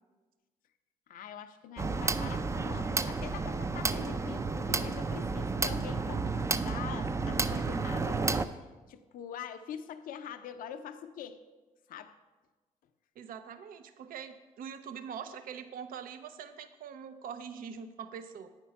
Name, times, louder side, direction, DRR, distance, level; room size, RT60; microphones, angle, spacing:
voice 1, 1.1-11.4 11.9-12.2, left 8 dB, 70° left, 9 dB, 0.5 m, -44 dB
sound 1, 1.8-8.5, right 4 dB, 20° right, 0.4 m, -31 dB
voice 2, 13.2-18.5, right 7 dB, 70° right, 10 dB, 0.5 m, -43 dB
8.5 x 4.4 x 5.7 m, 1.2 s
supercardioid pair, 65°, 15 cm